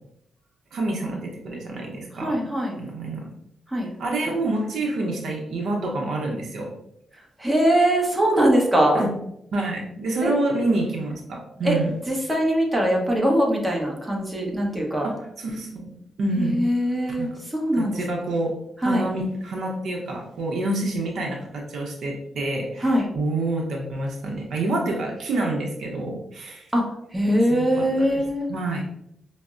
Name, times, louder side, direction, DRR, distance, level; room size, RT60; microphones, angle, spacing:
voice 1, 0.7-2.4 2.8-3.3 4.0-6.7 8.9-9.1 9.5-11.9 15.0-15.1 15.4-15.9 16.2-16.6 17.2-17.3 17.8-18.5 18.8-22.9 23.1-26.7 27.5-28.2 28.5-28.9, right 2 dB, 75° right, 0 dB, 0.7 m, -27 dB
voice 2, 2.1-2.8 3.7-3.9 7.4-9.0 10.2-10.3 11.6-11.8 12.1-15.1 16.4-18.0 18.8-19.1 22.8-23.1 26.7-28.5, equal, 15° right, -2 dB, 0.9 m, -22 dB
5.1 x 2.0 x 2.4 m, 0.76 s
cardioid pair, 80°, 0 cm